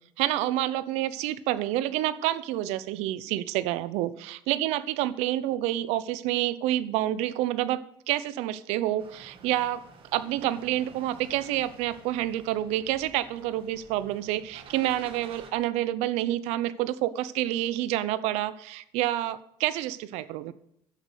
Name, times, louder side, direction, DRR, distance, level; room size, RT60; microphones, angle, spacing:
voice 1, 0.2-9.8 10.1-20.5, right 14 dB, 75° right, 16 dB, 0.7 m, -28 dB
sound 1, 9.0-15.5, right 5 dB, 55° right, 1.9 m, -51 dB
11.5 x 8.2 x 6.5 m, 0.76 s
supercardioid pair, 85°, 11 cm